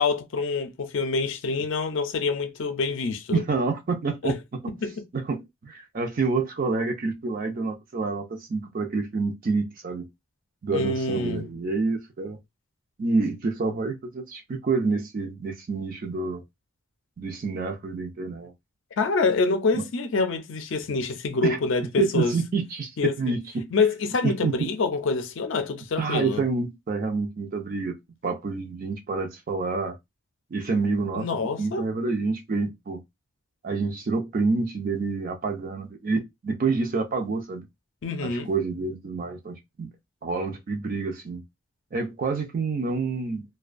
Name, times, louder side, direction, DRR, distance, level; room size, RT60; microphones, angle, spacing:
voice 1, 0.0-3.4 4.2-4.4 4.8-4.9 10.7-11.5 19.0-22.3 23.0-23.1 23.7-26.4 31.1-31.8 38.0-38.5, left 4 dB, 60° left, 0.4 m, -26 dB
voice 2, 3.3-4.7 5.1-10.1 10.6-12.4 13.0-16.4 17.2-18.5 19.7-19.8 21.4-21.6 22.0-23.7 24.2-24.7 26.0-28.0 28.2-30.0 30.5-31.3 31.6-33.0 33.6-37.7 38.2-39.9 40.2-41.4 41.9-43.4, right 4 dB, 40° right, 0.4 m, -28 dB
2.5 x 2.2 x 2.4 m
head